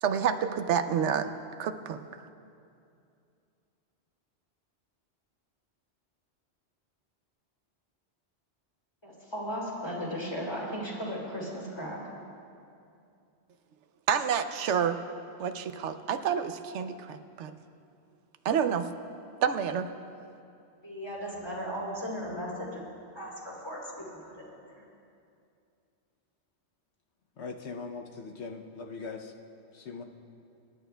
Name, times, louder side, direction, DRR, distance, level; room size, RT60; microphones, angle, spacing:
voice 1, 0.0-1.3 1.6-2.3 14.1-15.0 15.4-17.5 18.4-18.9 19.4-19.9, right 8 dB, 85° right, 9 dB, 0.9 m, -28 dB
voice 2, 9.0-12.0 20.8-22.9 23.1-24.4 24.7-24.8, equal, 20° left, -5 dB, 3.0 m, -36 dB
voice 3, 27.4-29.3 29.7-30.0, left 4 dB, 75° left, 3 dB, 1.0 m, -40 dB
25.5 x 11.0 x 2.3 m, 2.5 s
omnidirectional pair, 1.2 m